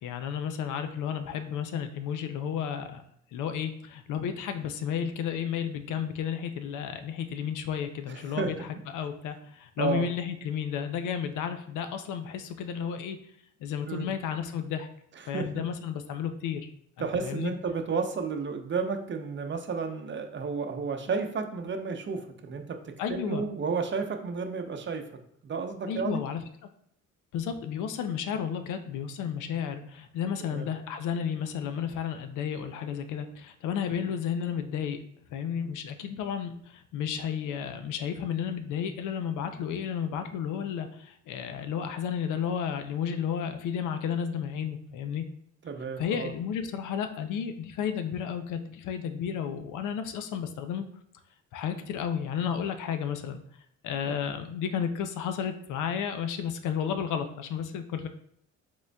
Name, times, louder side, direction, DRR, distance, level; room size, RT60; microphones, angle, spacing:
voice 1, 0.0-3.0 3.3-8.7 8.9-13.2 13.6-14.9 15.3-16.7 17.0-17.5 23.0-23.4 25.9-26.4 27.3-35.0 35.3-45.2 46.0-50.9 51.5-53.4 53.8-58.1, left 8 dB, 85° left, 8 dB, 0.5 m, -32 dB
voice 2, 8.1-8.7 9.8-10.1 13.9-14.1 15.2-15.6 17.0-25.0 25.4-26.2 30.5-30.7 45.6-46.3 54.0-54.2, right 5 dB, 40° right, 5 dB, 0.6 m, -32 dB
5.0 x 3.7 x 2.2 m, 0.70 s
cardioid pair, 90°, 30 cm